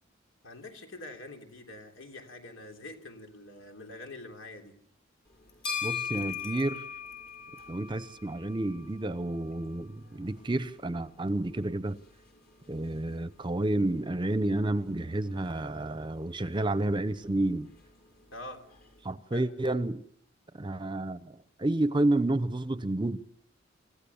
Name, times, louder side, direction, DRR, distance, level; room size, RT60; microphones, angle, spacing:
voice 1, 0.4-4.8 18.3-18.6 19.3-19.4, left 2 dB, 80° left, 3.4 m, -45 dB
sound 1, 5.3-19.1, left 7 dB, 50° left, 5.3 m, -43 dB
voice 2, 5.8-6.8 7.7-12.0 12.7-17.7 19.0-20.0 20.6-23.2, right 2 dB, 25° right, 0.8 m, -30 dB
28.5 x 15.0 x 7.1 m
head